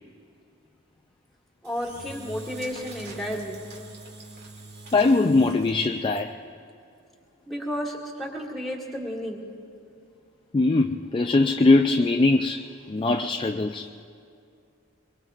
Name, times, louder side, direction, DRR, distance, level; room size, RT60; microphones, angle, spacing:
voice 1, 1.6-3.6 7.5-9.4, equal, ahead, 2.1 m, -32 dB
Engine / Drill, 1.6-6.2, right 2 dB, 50° right, 2.3 m, -43 dB
voice 2, 4.9-6.3 10.5-13.9, left 3 dB, 25° left, 0.3 m, -21 dB
23.5 x 23.0 x 2.5 m
head